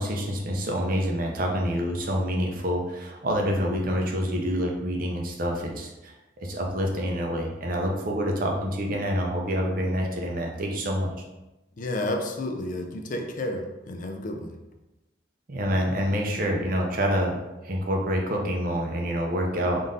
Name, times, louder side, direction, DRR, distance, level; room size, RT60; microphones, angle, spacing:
voice 1, 0.0-11.1 15.5-17.4 17.6-19.9, equal, 45° right, 0 dB, 0.6 m, -27 dB
voice 2, 11.8-14.6, left 1 dB, 40° left, 4 dB, 0.4 m, -31 dB
3.7 x 2.6 x 3.6 m, 1.0 s
head